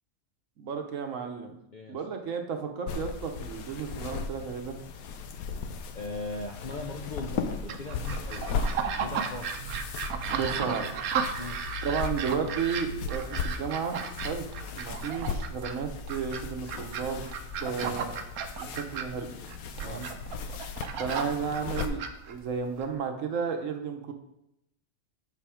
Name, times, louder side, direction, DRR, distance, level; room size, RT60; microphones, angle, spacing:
voice 1, 0.6-1.6 1.9-4.8 10.3-10.9 11.8-17.2 17.6-18.1 18.6-19.3 19.8-20.1 21.0-24.1, right 6 dB, 65° right, 5 dB, 1.2 m, -33 dB
sound 1, 2.9-21.9, left 5 dB, 80° left, 1.2 m, -37 dB
voice 2, 5.9-8.5 9.0-9.5 11.4-11.6 17.8-18.0 19.8-20.0, left 3 dB, 50° left, 1 dB, 0.6 m, -39 dB
sound 2, 7.7-22.9, right 6 dB, 85° right, 1.2 m, -35 dB
6.9 x 5.8 x 4.9 m, 0.82 s
omnidirectional pair, 1.5 m